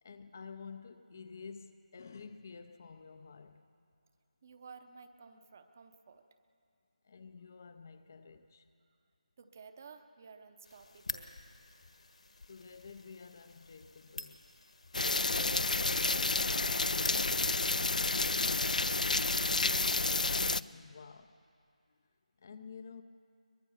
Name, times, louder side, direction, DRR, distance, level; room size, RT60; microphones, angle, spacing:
voice 1, 0.0-3.7 7.0-8.7 12.5-14.4 20.2-21.4 21.9-22.0 22.4-23.0, left 5 dB, 25° left, 0.4 m, -50 dB
voice 2, 4.4-6.3 8.9-9.0 9.4-11.3 15.1-18.6, right 5 dB, 20° right, 0.7 m, -53 dB
sound 1, 10.6-18.2, left 2 dB, 60° left, 1.5 m, -49 dB
sound 2, 14.9-20.6, left 3 dB, 80° left, 0.5 m, -30 dB
23.0 x 20.0 x 7.1 m
figure-of-eight pair, 175°, 4 cm